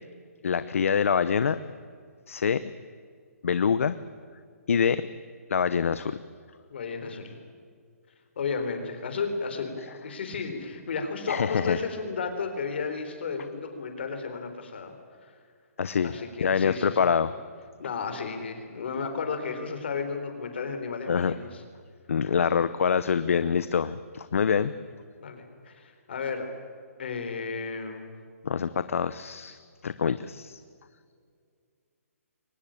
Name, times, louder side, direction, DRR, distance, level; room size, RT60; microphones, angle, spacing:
voice 1, 0.4-1.6 2.3-2.7 3.4-4.0 4.7-5.0 5.5-6.2 11.3-11.8 15.8-16.1 16.4-17.3 21.1-21.3 22.1-24.7 28.4-30.6, left 6 dB, 60° left, 14 dB, 0.8 m, -25 dB
voice 2, 6.7-7.3 8.4-14.9 15.2-15.3 16.0-17.0 17.8-21.6 25.2-26.5 27.0-28.1, left 5 dB, 45° left, 6 dB, 3.8 m, -33 dB
23.5 x 19.0 x 8.8 m, 2.1 s
hypercardioid pair, 175°, 8 cm